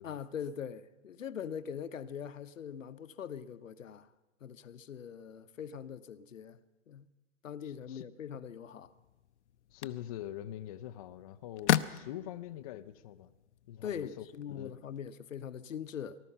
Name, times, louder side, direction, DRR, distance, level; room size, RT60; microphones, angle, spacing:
voice 1, 0.0-4.1 4.4-6.6 6.9-7.1 7.4-8.9 13.8-16.2, left 8 dB, 80° left, 0.9 m, -42 dB
voice 2, 7.6-8.0 9.7-13.3 13.7-14.8, left 12 dB, 30° left, 0.5 m, -44 dB
sound 1, 8.8-15.0, left 12 dB, 65° left, 0.7 m, -37 dB
19.5 x 12.5 x 5.6 m
hypercardioid pair, 135°, 38 cm